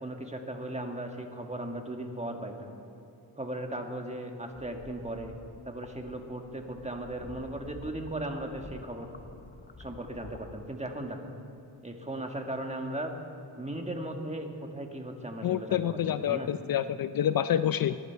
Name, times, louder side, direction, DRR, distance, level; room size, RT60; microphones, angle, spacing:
voice 1, 0.0-2.7 3.4-5.3 5.6-9.1 9.8-11.2 11.8-13.1 13.6-16.5, right 1 dB, 15° right, 3 dB, 1.7 m, -37 dB
sound 1, 4.5-10.7, left 4 dB, 25° left, 0.9 m, -49 dB
voice 2, 15.4-18.0, left 10 dB, 55° left, 13 dB, 0.5 m, -28 dB
20.5 x 11.5 x 4.6 m, 2.7 s
cardioid pair, 75°, 42 cm